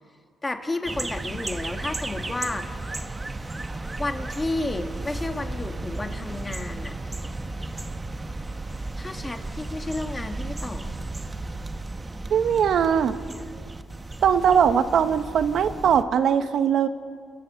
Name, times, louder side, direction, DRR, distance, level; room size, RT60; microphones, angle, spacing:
voice 1, 0.4-2.7 4.0-6.9 9.0-10.9, left 2 dB, 20° left, 6 dB, 1.8 m, -31 dB
sound 1, 0.8-16.0, right 2 dB, 20° right, 1.0 m, -34 dB
voice 2, 12.3-13.2 14.2-16.9, right 8 dB, 65° right, 10 dB, 0.9 m, -20 dB
28.5 x 14.5 x 6.9 m, 2.1 s
cardioid pair, 90°, 0 cm